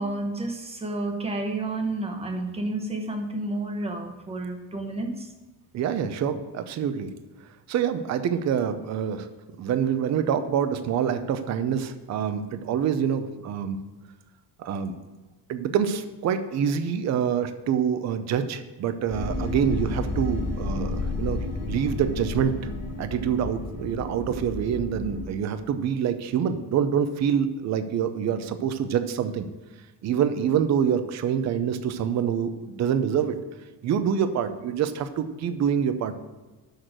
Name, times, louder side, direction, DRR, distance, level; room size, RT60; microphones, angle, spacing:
voice 1, 0.0-5.3, right 2 dB, 15° right, 5 dB, 0.9 m, -30 dB
voice 2, 5.7-7.1 7.7-9.3 9.6-13.8 14.6-14.9 15.5-22.6 23.0-29.5 30.0-33.4 33.8-36.1, right 8 dB, 45° right, 10 dB, 0.6 m, -26 dB
sound 1, 19.1-25.3, left 2 dB, 40° left, 2.0 m, -31 dB
6.5 x 6.4 x 7.5 m, 1.2 s
cardioid pair, 165°, 40 cm